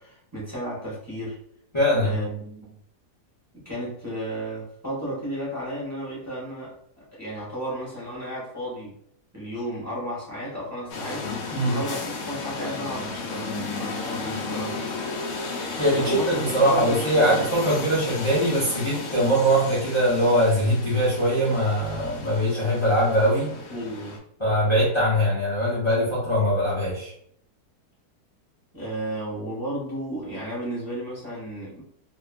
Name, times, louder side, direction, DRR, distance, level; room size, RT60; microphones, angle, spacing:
voice 1, 0.0-1.4 2.0-2.8 3.5-8.9 9.3-11.3 11.6-14.8 16.0-17.6 23.7-24.2 28.7-31.8, equal, 15° right, -7 dB, 0.7 m, -33 dB
voice 2, 1.7-2.2 11.5-11.8 15.8-23.5 24.4-27.1, equal, 40° left, -9 dB, 0.4 m, -22 dB
sound 1, 10.9-24.2, left 4 dB, 70° left, 0.9 m, -34 dB
2.5 x 2.5 x 2.4 m, 0.68 s
omnidirectional pair, 1.7 m